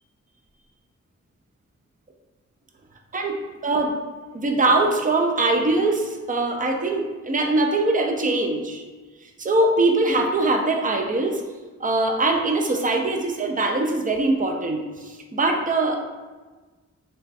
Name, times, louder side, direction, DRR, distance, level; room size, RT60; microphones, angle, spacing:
voice 1, 3.6-4.0 4.3-8.8 9.4-11.4 11.8-16.0, right 2 dB, 30° right, 3 dB, 0.4 m, -22 dB
3.0 x 2.2 x 4.1 m, 1.3 s
wide cardioid pair, 130°, 29 cm